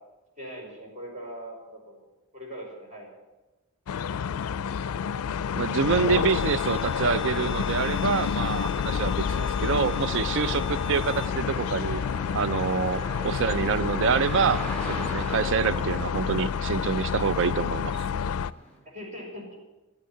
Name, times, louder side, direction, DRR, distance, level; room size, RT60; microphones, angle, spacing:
voice 1, 0.4-2.0 2.3-3.1 9.2-9.5 10.8-11.1 13.1-13.4 15.4-15.7 18.8-19.4, equal, 35° right, 5.3 m, -41 dB
sound 1, 3.9-18.5, left 7 dB, 85° left, 0.4 m, -29 dB
sound 2, 5.4-5.5 5.9-18.8, left 1 dB, 5° left, 4.6 m, -40 dB
voice 2, 5.6-9.1 9.6-12.0 12.3-18.0, right 5 dB, 60° right, 0.5 m, -26 dB
Bowed string instrument, 6.2-11.4, left 5 dB, 25° left, 1.4 m, -43 dB
13.5 x 9.2 x 9.3 m
head